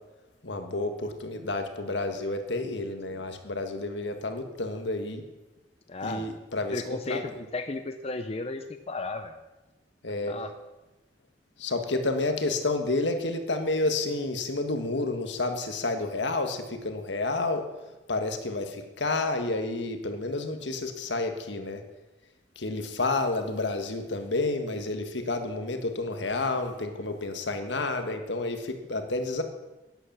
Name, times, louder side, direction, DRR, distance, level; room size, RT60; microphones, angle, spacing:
voice 1, 0.4-5.3 6.0-7.2 10.0-10.4 11.6-17.7 18.1-21.8 22.5-29.4, left 2 dB, 75° left, 6 dB, 1.6 m, -30 dB
voice 2, 5.9-6.3 6.7-9.3 10.3-10.5, left 3 dB, 35° left, 7 dB, 0.7 m, -34 dB
11.5 x 9.9 x 7.4 m, 1.1 s
head